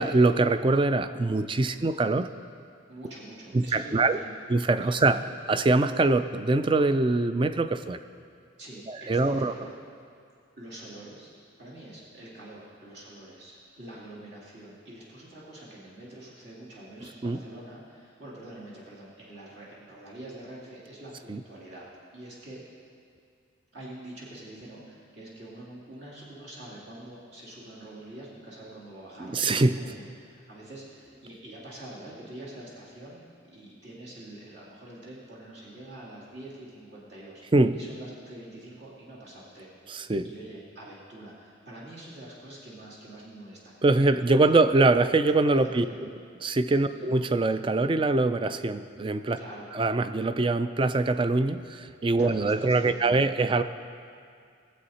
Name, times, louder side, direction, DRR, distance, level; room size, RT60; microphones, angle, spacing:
voice 1, 0.0-2.3 3.5-4.2 4.5-5.2 5.5-8.0 8.9-9.5 17.2-17.4 21.3-21.4 29.2-29.8 37.5-37.8 39.9-40.3 43.8-45.9 46.4-49.4 49.7-53.6, right 2 dB, 25° right, 11 dB, 0.3 m, -23 dB
voice 2, 2.9-4.3 4.9-5.2 8.6-9.7 10.6-21.9 22.1-22.6 23.7-33.2 33.5-37.4 37.7-39.8 40.2-44.6 45.3-46.0 46.9-47.1 49.4-49.7 52.2-53.3, right 1 dB, 60° right, -6 dB, 2.4 m, -45 dB
19.0 x 7.8 x 4.2 m, 2.3 s
head